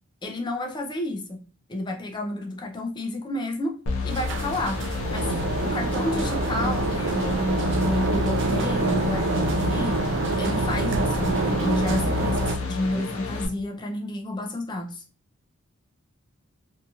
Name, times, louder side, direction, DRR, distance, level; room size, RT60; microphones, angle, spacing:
voice 1, 0.2-1.4 1.7-3.8 4.0-4.8 5.1-5.3 5.6-10.0 10.4-15.0, left 1 dB, 20° left, 3 dB, 0.4 m, -30 dB
sound 1, 3.9-13.5, left 4 dB, 90° left, 0.6 m, -31 dB
sound 2, 4.1-12.6, right 3 dB, 60° right, 0.4 m, -26 dB
2.7 x 2.4 x 2.8 m, 0.38 s
head